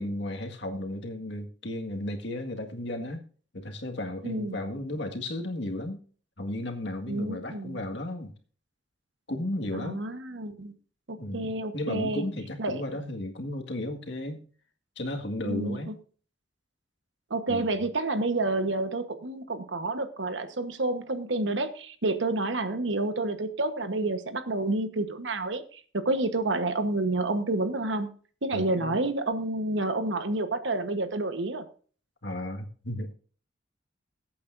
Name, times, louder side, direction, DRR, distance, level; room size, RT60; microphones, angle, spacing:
voice 1, 0.0-3.3 3.5-6.0 6.4-8.3 9.3-10.0 11.2-14.4 15.0-16.0 17.5-17.7 28.5-29.0 32.2-33.1, left 1 dB, 70° left, 3 dB, 1.9 m, -34 dB
voice 2, 4.2-4.6 7.1-7.8 9.7-10.7 11.1-12.3 12.6-12.8 15.5-15.9 17.3-28.1 28.4-31.6, right 2 dB, 85° right, 9 dB, 1.2 m, -29 dB
21.0 x 8.5 x 2.6 m, 0.42 s
head